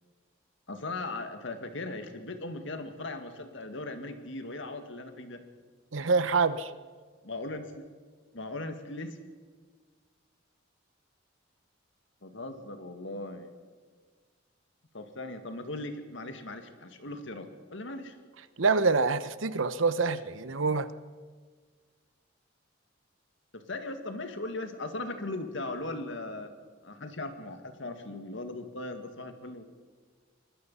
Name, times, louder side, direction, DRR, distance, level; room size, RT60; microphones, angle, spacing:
voice 1, 0.7-5.4 7.2-7.8 8.3-9.2 12.2-13.5 14.9-18.2 23.5-26.5 26.8-29.6, left 2 dB, 70° left, 7 dB, 2.1 m, -38 dB
voice 2, 5.9-6.7 18.6-20.9, right 4 dB, 80° right, 14 dB, 1.0 m, -26 dB
24.5 x 20.0 x 5.6 m, 1.5 s
head